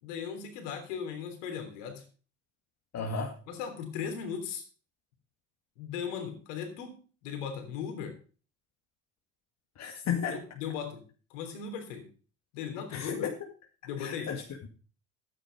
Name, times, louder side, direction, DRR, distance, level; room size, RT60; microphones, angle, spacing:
voice 1, 0.0-2.0 3.5-4.6 5.8-6.9 7.2-8.1 10.3-11.0 11.3-12.1 12.5-13.3 13.8-14.3, left 7 dB, 70° left, 3.4 m, -37 dB
voice 2, 2.9-3.3 9.8-10.4 12.9-13.3 14.0-14.7, left 6 dB, 45° left, 2.1 m, -33 dB
11.0 x 9.5 x 5.2 m
hypercardioid pair, 60°, 38 cm